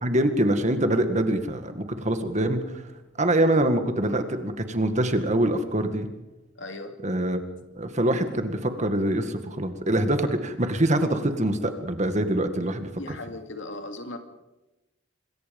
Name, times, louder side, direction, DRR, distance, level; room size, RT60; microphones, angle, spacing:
voice 1, 0.0-2.6 3.2-6.1 7.0-7.4 7.8-12.9, right 1 dB, 35° right, 8 dB, 2.0 m, -24 dB
voice 2, 6.6-7.0 13.0-14.2, left 2 dB, 65° left, 6 dB, 2.6 m, -37 dB
26.0 x 22.0 x 5.5 m, 1.0 s
head